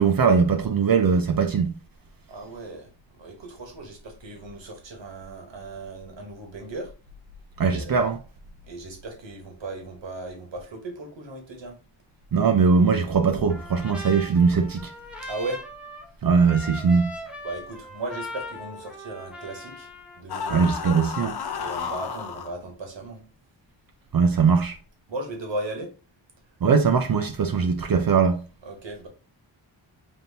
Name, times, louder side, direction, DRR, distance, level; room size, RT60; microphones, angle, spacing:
voice 1, 0.0-1.7 7.6-8.2 12.3-14.9 16.2-17.1 20.5-21.3 24.1-24.8 26.6-28.4, right 5 dB, 50° right, 0.5 m, -20 dB
voice 2, 2.3-2.9 3.2-6.9 7.6-8.1 8.6-11.7 15.3-15.6 17.4-19.9 20.2-20.6 21.5-23.2 25.1-25.9 28.6-29.1, right 2 dB, 65° right, 1.3 m, -36 dB
Trumpet, 13.5-20.2, left 1 dB, ahead, 0.6 m, -40 dB
sound 1, 20.3-22.5, left 6 dB, 55° left, 0.6 m, -32 dB
5.3 x 2.7 x 2.8 m
wide cardioid pair, 115°, 47 cm